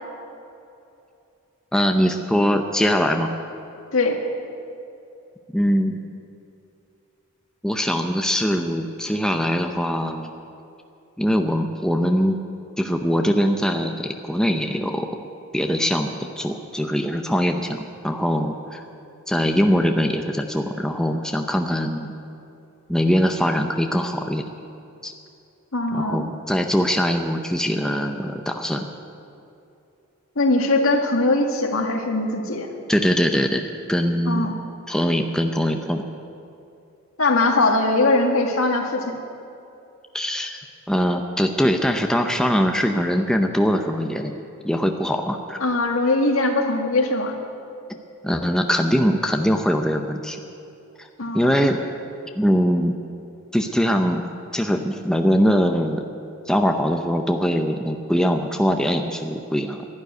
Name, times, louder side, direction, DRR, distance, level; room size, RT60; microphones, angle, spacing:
voice 1, 1.7-3.3 5.5-6.0 7.6-10.3 11.2-12.4 12.8-15.1 15.5-18.8 19.3-22.1 22.9-24.4 25.0-25.1 25.9-28.9 32.9-34.5 34.9-36.0 40.1-40.6 40.9-44.3 44.6-45.6 48.2-50.4 51.0-51.1 51.3-51.8 52.4-53.0 53.5-54.2 54.5-56.0 56.5-59.9, equal, 5° left, 4 dB, 0.6 m, -22 dB
voice 2, 25.7-26.3 30.4-32.7 34.3-34.6 37.2-39.2 45.6-47.4 51.2-51.7, left 2 dB, 80° left, 3 dB, 1.8 m, -21 dB
12.0 x 11.5 x 9.6 m, 2.7 s
head